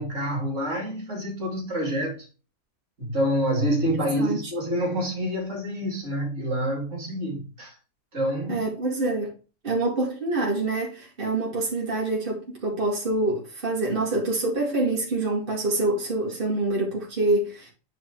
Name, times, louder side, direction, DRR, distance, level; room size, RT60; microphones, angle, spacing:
voice 1, 0.0-2.3 3.0-7.8 8.1-8.6, equal, 55° right, 3.0 m, -27 dB
voice 2, 8.5-9.3 9.6-17.7, right 2 dB, 40° right, 2.3 m, -26 dB
8.8 x 3.7 x 4.7 m
omnidirectional pair, 1.5 m